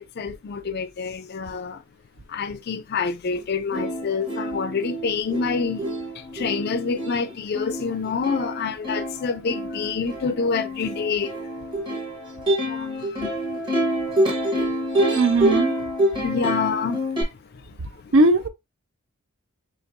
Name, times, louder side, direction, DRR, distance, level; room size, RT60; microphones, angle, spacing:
voice 1, 0.0-1.8 2.3-5.9 6.1-11.3 12.6-13.4 14.6-14.7 16.2-17.0 18.0-18.1, left 5 dB, 45° left, 0.4 m, -27 dB
Plucked string instrument, 3.4-3.5 3.7-17.2, right 1 dB, 20° right, 1.0 m, -27 dB
voice 2, 15.1-15.7 18.1-18.5, right 2 dB, 65° right, 0.6 m, -18 dB
4.4 x 3.1 x 2.5 m
head